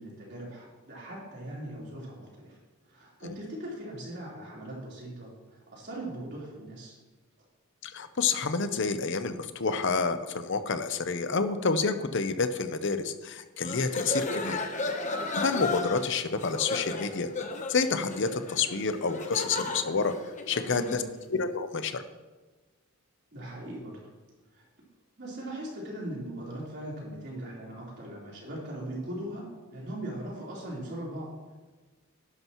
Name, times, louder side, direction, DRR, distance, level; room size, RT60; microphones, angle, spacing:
voice 1, 0.0-2.6 2.9-6.9 20.6-21.0 23.3-24.0 24.5-24.7 25.2-31.5, right 1 dB, 50° right, -5 dB, 3.8 m, -40 dB
voice 2, 7.8-14.6 15.3-17.3 17.7-20.1 20.5-21.0 21.3-22.0, left 4 dB, 55° left, 10 dB, 0.7 m, -29 dB
sound 1, 13.6-21.1, left 3 dB, 35° left, 1.0 m, -34 dB
11.5 x 11.0 x 3.1 m, 1.2 s
head